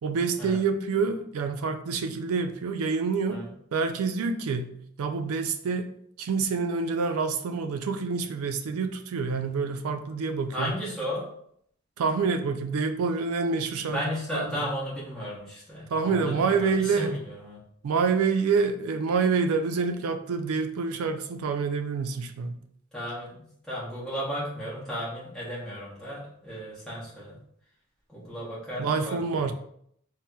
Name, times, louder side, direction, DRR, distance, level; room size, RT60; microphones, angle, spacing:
voice 1, 0.0-3.4 3.7-5.9 6.2-10.7 12.0-14.0 14.3-14.7 15.9-17.2 17.8-22.6 28.8-29.5, right 5 dB, 80° right, 7 dB, 0.3 m, -27 dB
voice 2, 10.5-11.2 13.9-17.6 22.9-23.3 23.7-27.3 28.1-29.5, equal, 5° left, -9 dB, 0.8 m, -34 dB
4.0 x 2.0 x 2.2 m, 0.68 s
head